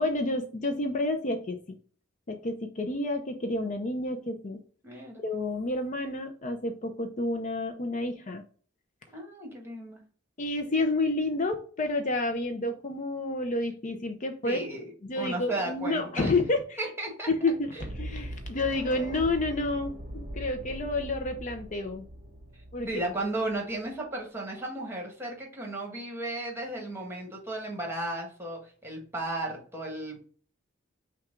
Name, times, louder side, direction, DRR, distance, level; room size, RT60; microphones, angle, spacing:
voice 1, 0.0-1.6 2.3-4.6 5.2-8.4 10.4-14.6 15.0-16.8 17.3-22.1 22.7-22.9, left 2 dB, 40° left, 6 dB, 0.5 m, -30 dB
voice 2, 4.8-5.2 9.1-10.0 14.4-16.3 16.8-17.3 17.7-17.8 22.5-30.2, right 1 dB, 10° right, 0 dB, 1.4 m, -35 dB
sound 1, 17.8-23.8, right 1 dB, 45° right, 0.8 m, -40 dB
5.8 x 2.3 x 3.7 m, 0.44 s
head